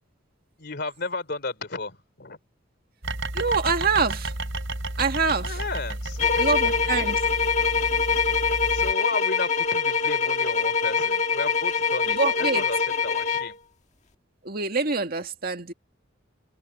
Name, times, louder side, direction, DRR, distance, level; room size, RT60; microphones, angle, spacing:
voice 1, 0.6-2.4 5.4-6.8 8.7-13.6, left 3 dB, 55° left, 3.4 m, -33 dB
sound 1, 3.0-8.9, right 2 dB, 75° right, 3.2 m, -32 dB
voice 2, 3.3-4.3 5.0-5.6 6.4-7.2 12.1-12.6 14.4-15.7, right 4 dB, 50° right, 2.1 m, -25 dB
sound 2, 6.2-13.6, left 5 dB, 35° left, 1.7 m, -24 dB
head